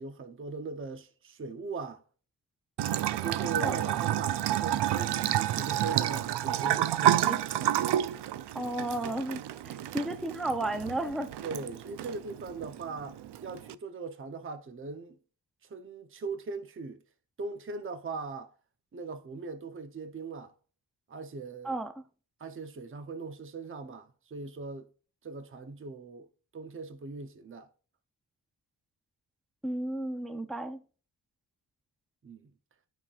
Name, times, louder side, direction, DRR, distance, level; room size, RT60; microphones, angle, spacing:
voice 1, 0.0-2.0 3.2-7.3 11.4-15.2 15.6-17.0 17.4-18.5 18.9-20.5 21.1-21.8 22.4-24.9 25.2-26.3 26.5-27.7 32.2-32.5, right 4 dB, 30° right, 0.7 m, -40 dB
Bathtub (filling or washing) / Trickle dribble, 2.8-13.7, right 12 dB, 90° right, 0.5 m, -30 dB
voice 2, 8.5-11.3 21.6-21.9 29.6-30.8, right 1 dB, ahead, 0.5 m, -33 dB
14.5 x 5.7 x 2.4 m
wide cardioid pair, 130°, 39 cm